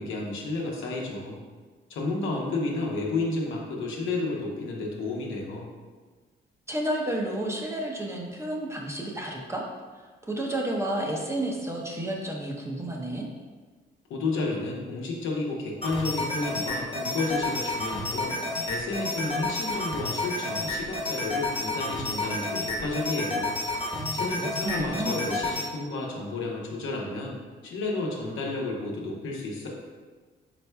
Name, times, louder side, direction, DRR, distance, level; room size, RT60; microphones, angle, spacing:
voice 1, 0.0-1.4 1.9-5.7 14.1-18.3 18.7-23.5 24.1-27.4 27.6-29.7, left 2 dB, 85° left, -2 dB, 0.9 m, -31 dB
voice 2, 6.7-9.6 9.9-13.2 23.9-25.2, right 1 dB, 15° right, -1 dB, 0.6 m, -31 dB
sound 1, 15.8-25.7, left 2 dB, 25° left, 1.0 m, -30 dB
4.4 x 4.2 x 2.2 m, 1.4 s
cardioid pair, 90°, 20 cm